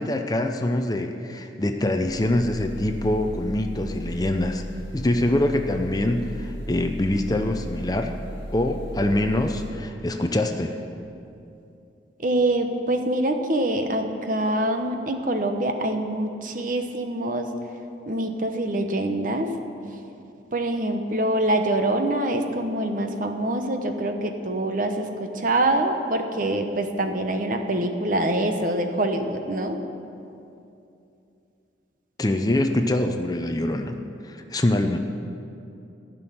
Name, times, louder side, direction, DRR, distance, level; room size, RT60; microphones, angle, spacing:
voice 1, 0.0-4.6 4.9-8.1 8.5-10.8 32.2-34.0 34.2-35.0, left 1 dB, 20° left, 5 dB, 0.6 m, -24 dB
sound 1, 2.1-9.7, equal, 25° right, 3.2 m, -36 dB
voice 2, 12.2-17.5 18.1-19.5 20.5-29.8, right 1 dB, 45° right, 6 dB, 0.9 m, -25 dB
15.0 x 6.2 x 9.3 m, 2.7 s
head